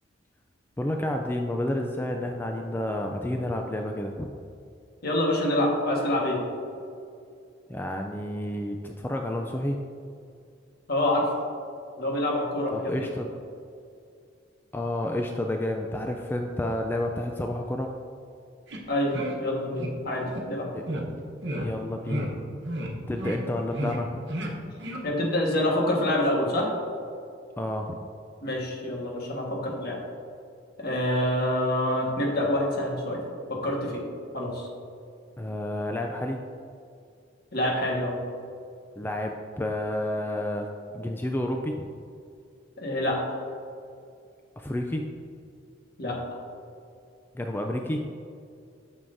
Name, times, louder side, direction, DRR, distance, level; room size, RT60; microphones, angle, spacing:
voice 1, 0.8-4.3 7.7-9.8 12.7-13.3 14.7-17.9 20.7-20.8 21.1-21.2 21.6-22.5 23.1-24.2 27.6-28.0 35.4-36.4 39.0-40.7 40.9-41.9 44.6-45.1 47.3-48.1, left 1 dB, 10° left, 2 dB, 0.3 m, -30 dB
voice 2, 5.0-6.4 10.9-11.3 12.0-13.0 18.9-20.7 25.0-26.7 28.4-30.0 30.8-33.2 33.5-34.0 34.3-34.7 37.5-38.2 42.8-43.4 46.0-46.2, left 1 dB, 55° left, -2 dB, 1.5 m, -26 dB
sound 1, 18.7-18.8 19.1-19.3 19.7-19.9 20.3-20.4 20.9-21.0 21.4-21.7 22.0-22.3 22.6-22.9 23.2-23.4 23.7-24.0 24.3-24.5 24.8-25.0, right 1 dB, 65° right, 1.1 m, -32 dB
9.0 x 6.3 x 2.6 m, 2.4 s
head